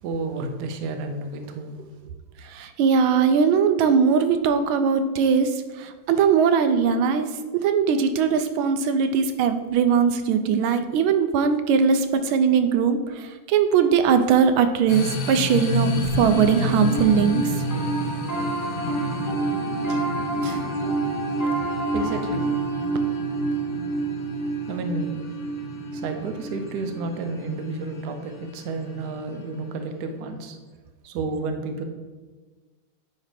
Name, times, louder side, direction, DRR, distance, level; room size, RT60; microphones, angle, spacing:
voice 1, 0.0-1.9 19.9-20.1 20.3-20.7 21.6-22.5 24.7-25.3 25.9-30.6 31.0-31.8, right 3 dB, 65° right, 6 dB, 1.2 m, -31 dB
voice 2, 2.4-5.5 5.8-7.3 7.5-17.5, right 6 dB, 85° right, 9 dB, 1.4 m, -20 dB
sound 1, 14.9-30.0, left 2 dB, 75° left, 1.6 m, -32 dB
Piano, 16.1-27.6, right 3 dB, 10° left, 1.0 m, -28 dB
9.5 x 3.3 x 5.0 m, 1.3 s
omnidirectional pair, 2.2 m